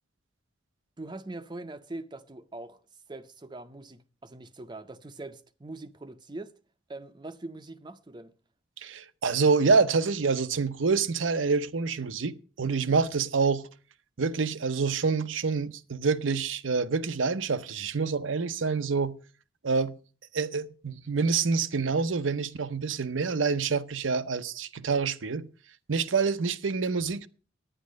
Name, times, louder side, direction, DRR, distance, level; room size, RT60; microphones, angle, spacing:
voice 1, 1.0-2.8 3.1-6.5 6.9-8.3, right 2 dB, 25° right, 0.6 m, -42 dB
voice 2, 8.8-13.7 14.2-19.1 19.6-19.9 20.3-25.5 25.9-27.3, right 4 dB, 90° right, 0.7 m, -27 dB
10.0 x 9.5 x 6.3 m
head